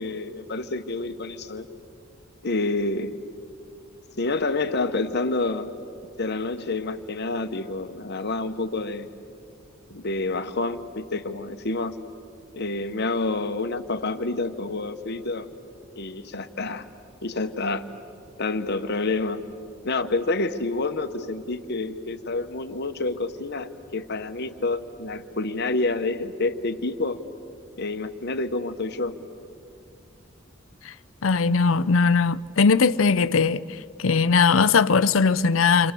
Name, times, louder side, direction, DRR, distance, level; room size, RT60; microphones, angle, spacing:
voice 1, 0.0-1.7 2.4-3.2 4.2-5.7 6.2-9.1 9.9-12.0 12.5-15.5 16.0-16.9 17.2-17.9 18.4-19.4 19.8-27.2 27.8-29.2, left 3 dB, 55° left, 1.1 m, -28 dB
voice 2, 31.2-33.6 34.0-35.9, left 5 dB, 85° left, 0.6 m, -19 dB
29.0 x 25.5 x 6.9 m
head